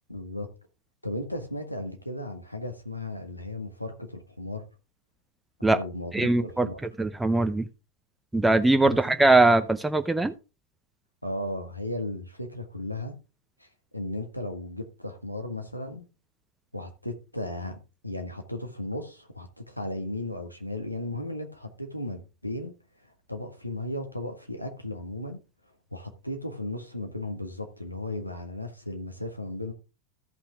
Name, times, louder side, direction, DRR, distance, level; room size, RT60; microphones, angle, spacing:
voice 1, 0.1-0.5 1.0-4.6 5.7-6.1 6.4-6.8 11.2-13.2 13.6-13.7 13.9-16.1 16.7-17.8 18.0-22.7 23.0-25.4 25.9-29.7, left 1 dB, 90° left, 1.8 m, -35 dB
voice 2, 6.1-6.7 7.0-7.7 8.3-10.3, right 2 dB, 5° right, 0.7 m, -21 dB
14.5 x 5.7 x 3.7 m
figure-of-eight pair, 90°, 0 cm